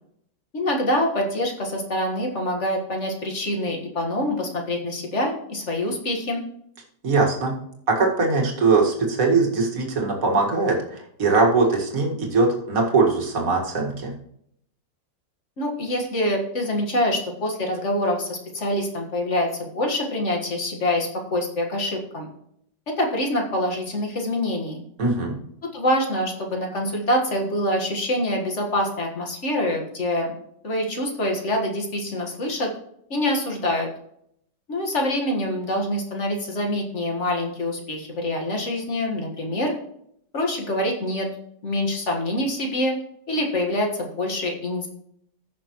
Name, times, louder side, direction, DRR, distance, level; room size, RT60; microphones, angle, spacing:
voice 1, 0.5-6.4 15.6-22.3 22.9-24.8 25.6-30.3 30.6-32.7 33.1-33.9 34.7-39.7 40.3-41.3 41.6-42.9 43.3-44.9, left 1 dB, 40° left, 1 dB, 1.9 m, -25 dB
voice 2, 7.0-7.5 7.9-14.1 25.0-25.4, right 3 dB, 50° right, 0 dB, 2.3 m, -21 dB
15.5 x 6.3 x 3.1 m, 0.72 s
omnidirectional pair, 1.9 m